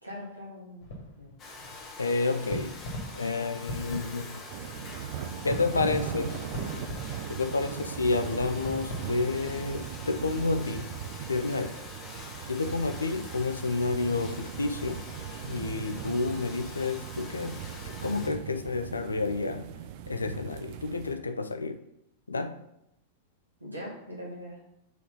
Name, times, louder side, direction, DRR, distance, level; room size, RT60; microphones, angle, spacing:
voice 1, 0.0-1.4 23.6-24.6, equal, 90° right, -5 dB, 2.0 m, -42 dB
sound 1, 0.8-9.3, left 1 dB, 55° left, 1.7 m, -41 dB
Domestic sounds home sounds, 1.4-18.3, left 3 dB, 30° left, 1.6 m, -45 dB
voice 2, 2.0-2.8 3.1-4.4 5.4-6.4 7.3-10.9 11.3-11.8 12.5-15.0 15.4-19.7 20.1-21.8 22.3-22.6, left 3 dB, 80° left, 9 dB, 0.4 m, -30 dB
sound 2, 4.5-21.2, right 9 dB, 50° right, 0.5 m, -39 dB
4.6 x 4.6 x 5.4 m, 0.81 s
figure-of-eight pair, 90°, 0 cm